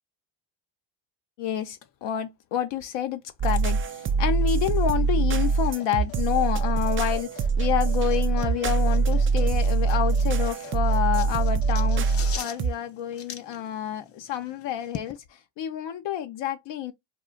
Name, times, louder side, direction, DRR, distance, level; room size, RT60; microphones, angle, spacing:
voice 1, 1.4-12.1 12.4-15.2 15.6-16.9, left 10 dB, 70° left, 0.6 m, -29 dB
sound 1, 3.4-12.7, right 5 dB, 30° right, 0.3 m, -23 dB
sound 2, 3.5-15.1, left 9 dB, 35° left, 0.4 m, -44 dB
2.4 x 2.1 x 3.7 m
supercardioid pair, 75°, 45 cm